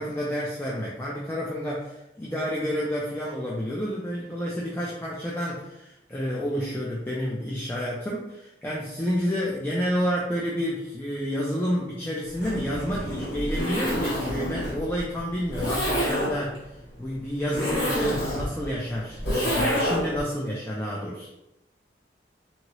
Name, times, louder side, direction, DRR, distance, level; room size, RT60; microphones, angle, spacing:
voice 1, 0.0-21.3, equal, 10° left, -5 dB, 0.4 m, -30 dB
Zipper (clothing), 12.3-20.2, equal, 75° left, 1.4 m, -28 dB
3.0 x 2.7 x 2.8 m, 0.89 s
head